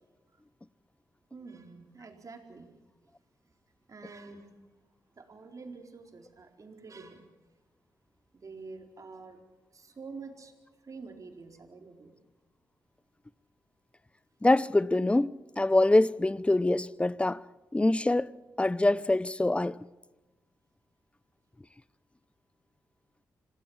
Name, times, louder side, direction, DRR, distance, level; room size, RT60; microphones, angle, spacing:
voice 1, 1.3-2.7 3.9-4.7 5.1-7.3 8.3-9.4 9.7-12.1, right 4 dB, 45° right, 4.3 m, -47 dB
voice 2, 14.4-17.4 17.7-18.3 18.6-19.8, left 2 dB, 15° left, 0.8 m, -24 dB
26.5 x 18.5 x 7.3 m
supercardioid pair, 50°, 8 cm